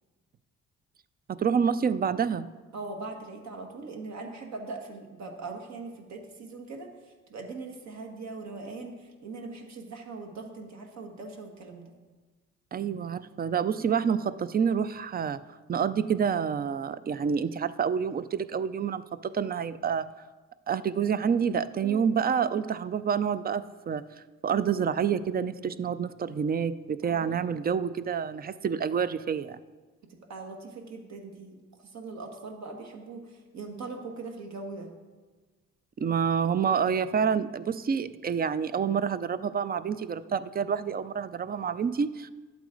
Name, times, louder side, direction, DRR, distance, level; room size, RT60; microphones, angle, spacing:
voice 1, 1.3-2.5 12.7-15.4 15.7-20.1 20.7-24.0 24.4-29.6 36.0-42.3, right 7 dB, 30° right, 14 dB, 0.4 m, -28 dB
voice 2, 2.7-6.9 7.3-12.0 13.8-14.0 21.8-22.1 27.0-27.5 30.3-31.6 31.9-34.9, right 3 dB, 65° right, 2 dB, 1.6 m, -41 dB
11.5 x 8.2 x 3.9 m, 1.3 s
cardioid pair, 90°, 30 cm